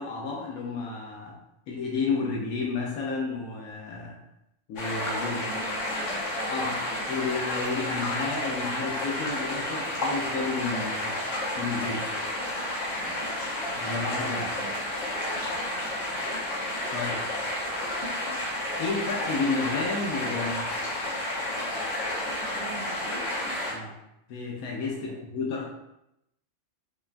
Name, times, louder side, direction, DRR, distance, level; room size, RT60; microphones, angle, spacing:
voice 1, 0.0-1.4 1.7-4.2 4.7-5.4 6.5-6.8 7.1-11.1 11.6-12.1 13.7-14.6 16.9-17.2 18.8-20.6 23.7-23.9 24.3-25.7, left 4 dB, 85° left, -1 dB, 1.1 m, -31 dB
sound 1, 4.8-23.7, left 1 dB, 60° left, 1.2 m, -31 dB
voice 2, 5.2-7.2 12.9-13.2 13.7-13.9 14.6-14.7 15.4-15.9 22.4-23.3 25.0-25.2, right 2 dB, 60° right, -4 dB, 0.5 m, -45 dB
4.8 x 2.2 x 2.5 m, 0.84 s
omnidirectional pair, 1.5 m